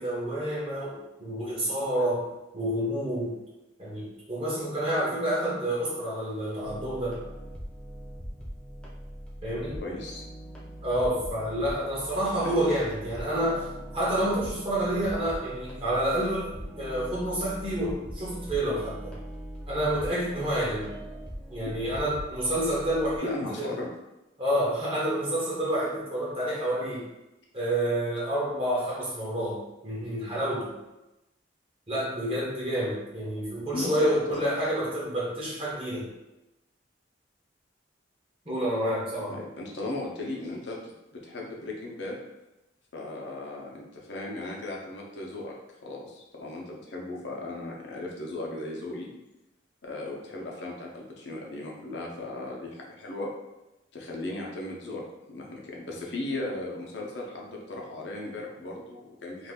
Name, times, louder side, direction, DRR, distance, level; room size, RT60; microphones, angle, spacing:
voice 1, 0.0-2.3 2.5-3.4 3.8-7.2 9.4-9.8 10.8-13.7 13.9-19.2 19.7-20.9 21.5-23.7 24.4-27.0 27.5-30.8 31.9-36.1 38.5-39.3, right 1 dB, 30° right, -6 dB, 0.7 m, -29 dB
sound 1, 6.6-23.2, equal, 5° left, 0.5 m, -41 dB
voice 2, 9.8-10.2 12.4-12.7 23.2-23.9 33.7-34.4 39.3-40.8 41.1-42.2 42.9-45.5 45.8-49.1 49.8-53.3 53.9-55.0 55.3-59.5, left 2 dB, 70° left, -2 dB, 0.7 m, -36 dB
2.5 x 2.5 x 3.5 m, 0.97 s
head